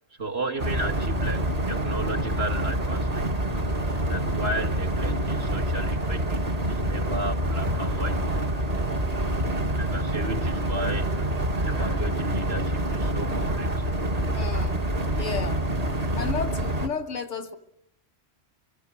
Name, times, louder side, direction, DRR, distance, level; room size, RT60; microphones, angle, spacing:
voice 1, 0.2-3.3 4.1-6.4 6.7-8.3 9.8-11.3 11.6-13.8, right 2 dB, 55° right, 3 dB, 2.3 m, -33 dB
sound 1, 0.6-16.9, right 1 dB, 35° right, 1.5 m, -27 dB
voice 2, 14.3-14.9 15.2-15.6 16.0-17.6, left 5 dB, 90° left, 8 dB, 2.0 m, -33 dB
25.5 x 17.0 x 8.5 m, 0.80 s
omnidirectional pair, 1.2 m